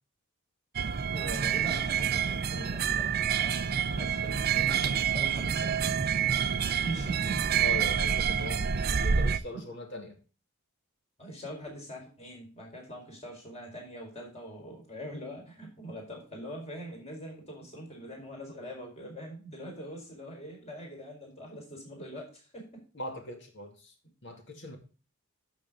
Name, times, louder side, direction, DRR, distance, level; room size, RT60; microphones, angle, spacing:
sound 1, 0.8-9.4, right 7 dB, 45° right, 0.5 m, -28 dB
voice 1, 1.1-6.0 6.6-7.6 8.7-8.9 9.5-9.6 11.2-22.8, right 1 dB, 30° left, 0 dB, 4.6 m, -43 dB
voice 2, 7.6-10.2 22.9-23.9 24.2-24.8, left 2 dB, 55° left, 4 dB, 2.4 m, -40 dB
12.0 x 6.6 x 3.7 m, 0.35 s
head